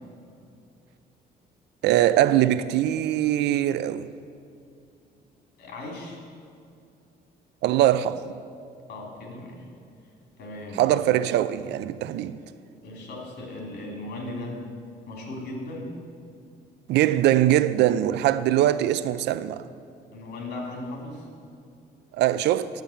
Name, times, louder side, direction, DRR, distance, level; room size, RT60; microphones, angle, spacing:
voice 1, 1.8-4.1 7.6-8.4 10.8-12.4 16.9-19.6 22.1-22.7, right 13 dB, 85° right, 0.5 m, -22 dB
voice 2, 5.6-6.2 8.9-9.6 10.4-10.9 12.8-14.6 15.1-16.0 20.1-21.3, left 2 dB, 70° left, 3.1 m, -37 dB
10.5 x 8.0 x 7.1 m
cardioid pair, 125°, 17 cm